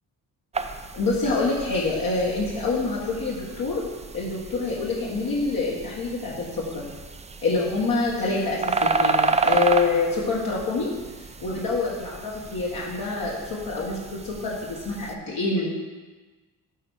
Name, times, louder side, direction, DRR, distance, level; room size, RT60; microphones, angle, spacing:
sound 1, 0.5-15.1, right 4 dB, 20° right, 0.4 m, -31 dB
voice 1, 0.9-3.8 4.1-6.9 7.4-10.9 11.4-15.8, left 3 dB, 60° left, -5 dB, 1.5 m, -26 dB
8.9 x 3.4 x 6.3 m, 1.3 s
cardioid pair, 95°, 38 cm